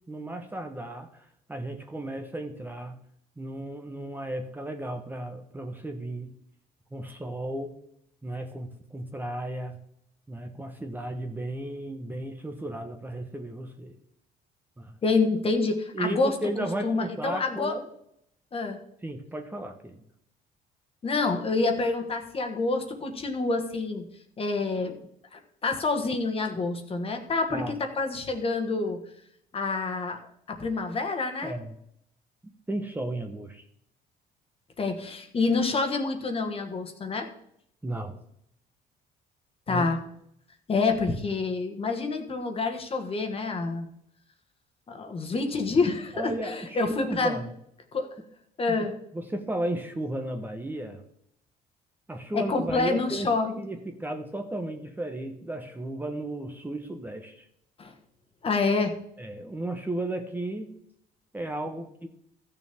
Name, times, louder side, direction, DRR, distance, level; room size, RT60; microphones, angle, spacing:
voice 1, 0.1-3.0 3.4-6.4 6.9-7.8 8.2-9.8 10.3-14.0 14.8-15.0 15.9-17.9 19.0-20.0 27.5-27.8 31.4-31.7 32.7-33.7 37.8-38.2 39.7-39.8 46.1-47.5 48.7-48.9 49.1-51.0 52.1-57.5 59.2-60.7 61.3-61.9, right 1 dB, 10° right, 5 dB, 1.1 m, -34 dB
voice 2, 15.0-16.3 16.8-17.8 18.5-18.8 21.0-24.1 24.4-24.9 25.3-29.0 29.5-30.2 30.5-31.5 34.8-37.3 39.7-40.0 40.7-43.9 44.9-46.3 46.7-47.4 47.9-48.1 48.6-48.9 52.3-53.6 57.8-57.9 58.4-58.9, left 3 dB, 35° left, 5 dB, 1.6 m, -27 dB
14.5 x 6.8 x 3.6 m, 0.72 s
cardioid pair, 110°, 17 cm